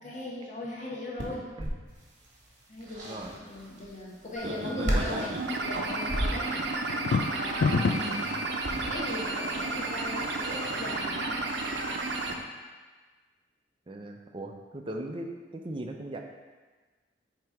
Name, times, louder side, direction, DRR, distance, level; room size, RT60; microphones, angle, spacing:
voice 1, 0.0-1.5 2.7-6.7 7.3-8.3 8.9-11.4, left 1 dB, 40° left, -4 dB, 0.9 m, -39 dB
sound 1, 1.2-11.6, equal, 45° right, 1.3 m, -37 dB
voice 2, 3.0-3.4 4.4-5.3 7.7-8.4 13.9-16.2, right 1 dB, 30° right, 2 dB, 0.5 m, -38 dB
sound 2, 4.4-12.3, right 2 dB, 65° right, 0.6 m, -32 dB
sound 3, 6.9-8.2, left 4 dB, 75° left, 0.3 m, -26 dB
7.6 x 2.9 x 4.8 m, 1.4 s
head